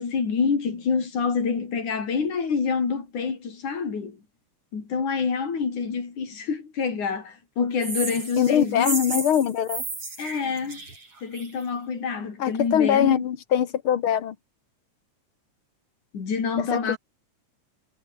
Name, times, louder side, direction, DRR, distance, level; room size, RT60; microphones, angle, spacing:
voice 1, 0.0-4.2 4.7-9.2 10.2-10.8 11.2-13.2 16.1-17.0, left 5 dB, 70° left, 6.0 m, -27 dB
sound 1, 7.8-11.6, right 3 dB, 45° right, 8.8 m, -33 dB
voice 2, 8.4-9.8 12.4-14.4 16.6-17.0, left 9 dB, 55° left, 1.8 m, -22 dB
omnidirectional pair, 3.6 m